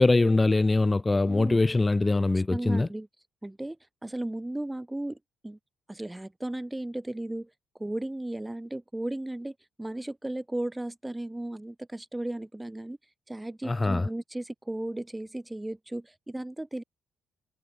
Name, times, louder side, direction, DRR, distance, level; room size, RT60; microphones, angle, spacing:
voice 1, 0.0-2.9 13.7-14.1, left 2 dB, 20° left, 1.5 m, -23 dB
voice 2, 1.3-1.6 2.5-3.1 3.4-3.8 4.0-5.2 5.4-5.6 5.9-7.5 7.8-13.0 13.3-16.8, right 1 dB, 10° right, 3.7 m, -35 dB
hypercardioid pair, 45°, 0 cm